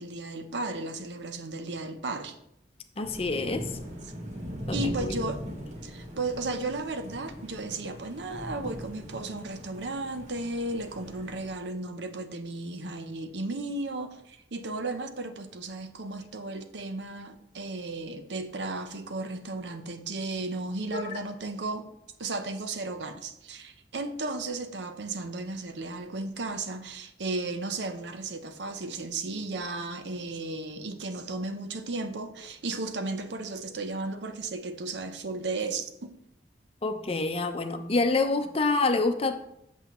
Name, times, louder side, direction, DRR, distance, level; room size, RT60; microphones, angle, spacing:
voice 1, 0.0-2.4 4.7-5.4 5.8-21.9 22.2-36.1, right 2 dB, 80° right, 0.7 m, -34 dB
voice 2, 3.0-3.7 4.7-5.1 20.9-21.1 36.8-39.4, left 3 dB, 35° left, 0.6 m, -27 dB
sound 1, 3.0-11.6, equal, 40° right, 1.4 m, -40 dB
8.0 x 7.3 x 3.0 m
head